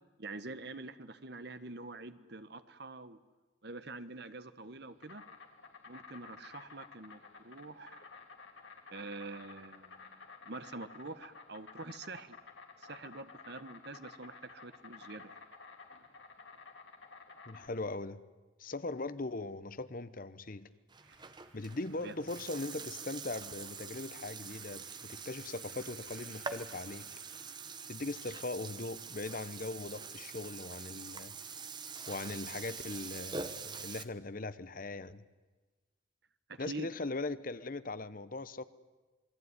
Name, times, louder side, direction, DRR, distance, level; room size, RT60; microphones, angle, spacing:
voice 1, 0.2-3.2 3.6-5.2 5.9-8.0 8.9-12.4 12.8-15.4 22.0-22.1 36.5-36.9, right 3 dB, 55° right, 1.4 m, -46 dB
Insect, 4.6-17.7, left 4 dB, 70° left, 3.4 m, -53 dB
voice 2, 17.5-18.2 18.6-20.7 21.5-27.0 27.9-31.3 32.1-35.2 36.6-38.6, left 2 dB, 45° left, 0.9 m, -40 dB
sound 1, 20.6-23.8 24.1-27.8, right 4 dB, 75° right, 5.3 m, -61 dB
Burping eructation, 20.9-34.0, right 5 dB, 20° right, 1.1 m, -45 dB
27.5 x 21.5 x 9.8 m
head